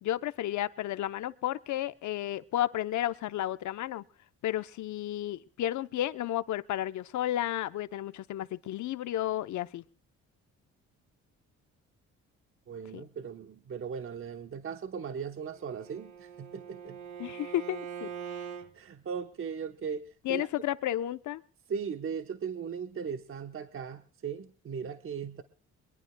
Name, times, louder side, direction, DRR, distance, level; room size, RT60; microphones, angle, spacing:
voice 1, 0.0-4.0 4.4-9.8 12.9-13.1 17.2-18.1 20.2-21.4, left 13 dB, 70° left, 0.8 m, -32 dB
voice 2, 12.7-17.0 18.7-20.5 21.7-25.4, right 6 dB, 45° right, 1.0 m, -38 dB
Bowed string instrument, 15.5-18.7, right 8 dB, 65° right, 1.6 m, -42 dB
22.5 x 22.5 x 2.2 m
cardioid pair, 90°, 30 cm